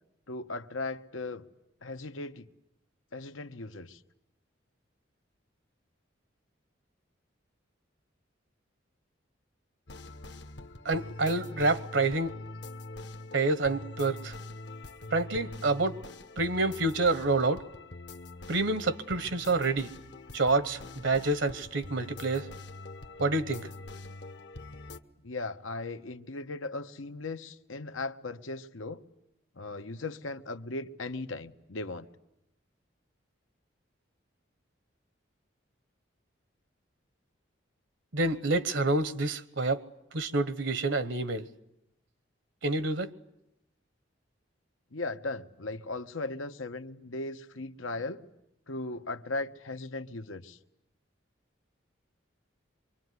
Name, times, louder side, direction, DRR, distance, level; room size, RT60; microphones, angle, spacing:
voice 1, 0.3-1.5 1.8-2.5 3.1-4.0 25.2-29.0 29.5-32.1 44.9-48.2 48.7-50.6, left 2 dB, 90° left, 1.2 m, -37 dB
sound 1, 9.9-25.0, left 2 dB, 60° left, 1.1 m, -44 dB
voice 2, 10.8-12.3 13.3-14.3 15.1-16.0 16.4-17.6 18.5-19.9 20.3-22.5 23.2-23.7 38.1-39.8 40.1-41.5 42.6-43.1, right 2 dB, 70° right, 1.1 m, -28 dB
25.0 x 24.0 x 9.6 m
head